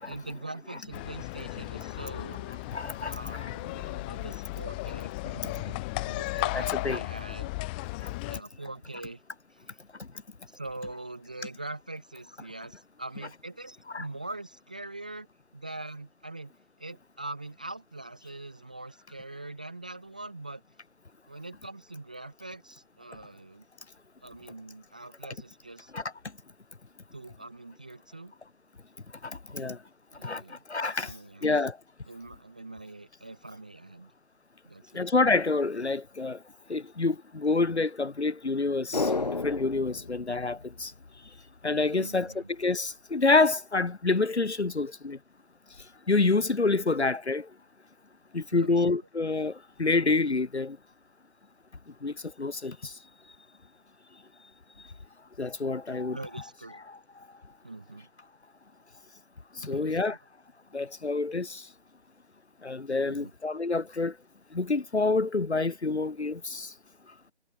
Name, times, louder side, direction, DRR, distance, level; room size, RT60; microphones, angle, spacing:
voice 1, 0.0-2.5 3.0-7.6 8.3-9.2 9.5-9.8 10.5-15.3 15.5-16.5 16.8-20.6 21.3-23.6 24.2-25.9 27.1-28.3 29.5-29.7 30.1-30.6 31.0-31.5 32.1-34.1 34.6-35.1 41.9-42.5 48.5-48.8 56.1-56.8 57.6-58.1 59.6-60.2 63.1-63.3, right 2 dB, 5° right, 0.9 m, -43 dB
sound 1, 0.9-8.4, left 24 dB, 10° left, 1.9 m, -35 dB
voice 2, 2.7-3.2 6.5-7.0 13.9-14.0 25.9-26.0 29.2-29.8 30.2-31.1 31.4-31.8 34.9-36.4 36.7-39.1 39.4-40.9 41.6-42.3 42.6-45.2 46.1-47.5 48.3-50.8 52.0-52.9 55.4-56.2 56.9-57.0 59.6-60.2 60.7-61.7 62.6-64.1 64.5-66.7, left 3 dB, 70° left, 1.8 m, -27 dB
sound 2, 38.9-41.4 41.7-41.8, left 3 dB, 40° left, 0.7 m, -32 dB
figure-of-eight pair, 160°, 34 cm